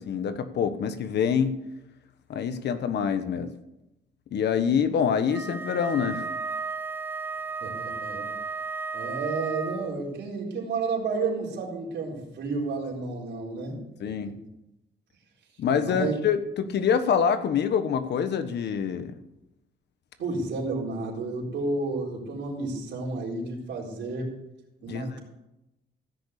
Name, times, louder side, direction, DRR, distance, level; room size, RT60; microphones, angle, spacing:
voice 1, 0.0-1.5 2.3-3.5 4.3-6.3 14.0-14.3 15.6-19.1 24.9-25.2, left 7 dB, 70° left, 10 dB, 1.2 m, -26 dB
Wind instrument woodwind instrument, 5.3-10.0, right 4 dB, 10° right, 0.5 m, -34 dB
voice 2, 7.6-8.3 8.9-13.8 14.2-14.4 15.8-16.1 20.2-24.4 24.8-25.2, right 3 dB, 75° right, -3 dB, 4.1 m, -31 dB
15.5 x 6.8 x 8.2 m, 0.89 s
cardioid pair, 115°, 18 cm